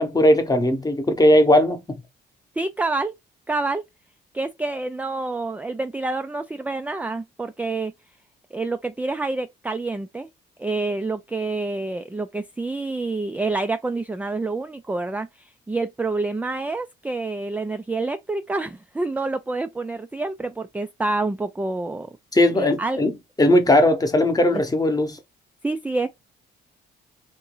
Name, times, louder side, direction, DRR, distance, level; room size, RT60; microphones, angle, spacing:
voice 1, 0.0-2.0 22.3-23.1 23.4-25.2, left 1 dB, 20° left, 0.9 m, -18 dB
voice 2, 2.6-3.1 3.5-3.8 4.3-7.9 8.5-10.3 10.6-22.1 22.5-23.0 24.5-24.6 25.6-26.1, right 3 dB, 10° right, 0.3 m, -27 dB
2.9 x 2.6 x 3.8 m
cardioid pair, 90°, 20 cm